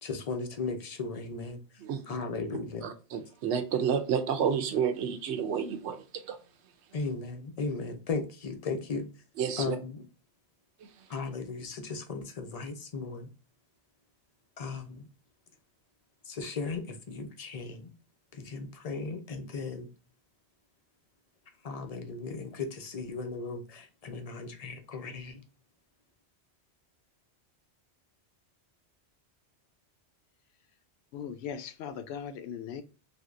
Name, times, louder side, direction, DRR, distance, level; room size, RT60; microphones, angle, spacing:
voice 1, 0.0-2.9 6.9-9.2 9.6-10.0 11.1-13.3 14.6-15.1 16.2-17.9 18.3-19.9 21.6-25.4, left 4 dB, 45° left, 0.6 m, -36 dB
voice 2, 2.8-6.4 9.4-9.8 10.8-10.9, right 7 dB, 80° right, 0.9 m, -30 dB
voice 3, 31.1-32.8, left 7 dB, 75° left, 0.8 m, -39 dB
3.5 x 2.7 x 2.4 m
omnidirectional pair, 1.1 m